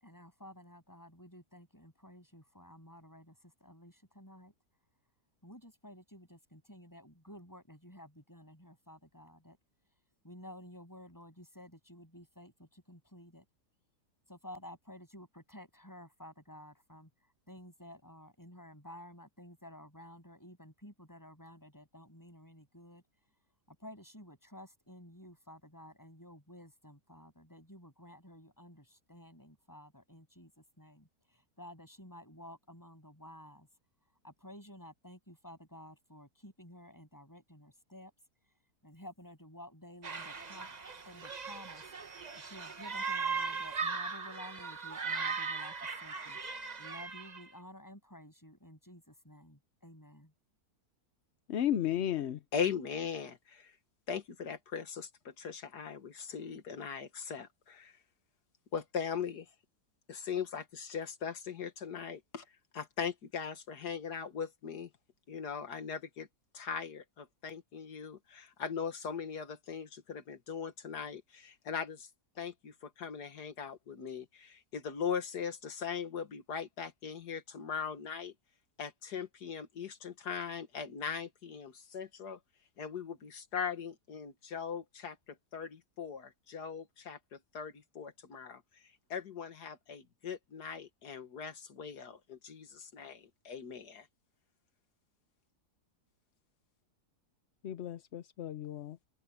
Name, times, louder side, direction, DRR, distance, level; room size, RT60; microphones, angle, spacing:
voice 1, 0.0-3.3 3.6-4.5 5.4-9.6 10.2-13.4 14.3-17.1 17.5-23.0 23.8-30.5 30.8-31.1 31.6-33.7 34.2-38.1 38.8-40.7 41.1-41.8 42.5-45.7 46.0-46.4 46.8-50.3, left 1 dB, 10° left, 7.6 m, -52 dB
sound 1, 40.0-47.5, right 5 dB, 30° right, 1.0 m, -38 dB
voice 2, 51.5-52.4 97.6-99.0, left 11 dB, 60° left, 0.8 m, -34 dB
voice 3, 52.5-53.8 54.1-57.9 58.7-59.5 60.1-62.4 62.7-64.9 65.3-66.3 66.5-72.1 72.4-78.3 78.8-82.4 82.8-85.2 85.5-88.8 89.1-94.1, left 7 dB, 85° left, 2.1 m, -40 dB
omnidirectional pair, 1.7 m